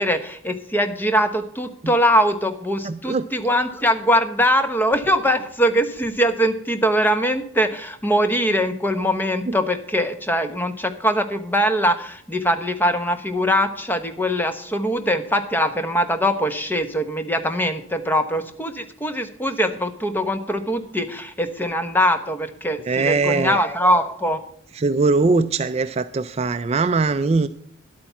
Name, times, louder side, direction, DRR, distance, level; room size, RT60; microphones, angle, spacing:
voice 1, 0.0-24.4, equal, 10° left, 8 dB, 1.0 m, -22 dB
voice 2, 2.8-3.2 9.5-9.6 22.9-23.6 24.7-27.5, right 3 dB, 30° right, 11 dB, 0.3 m, -21 dB
11.5 x 8.6 x 5.7 m, 0.65 s
head